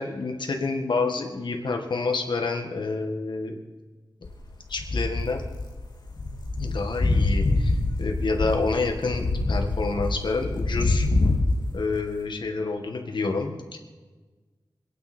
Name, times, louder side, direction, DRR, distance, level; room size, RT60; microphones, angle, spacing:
voice 1, 0.0-3.6 4.7-5.4 6.6-11.1 11.7-13.8, left 3 dB, 80° left, 3 dB, 1.8 m, -28 dB
sound 1, 4.2-11.9, left 2 dB, 60° left, 2.0 m, -25 dB
25.0 x 9.6 x 4.4 m, 1.3 s
wide cardioid pair, 65°, 8 cm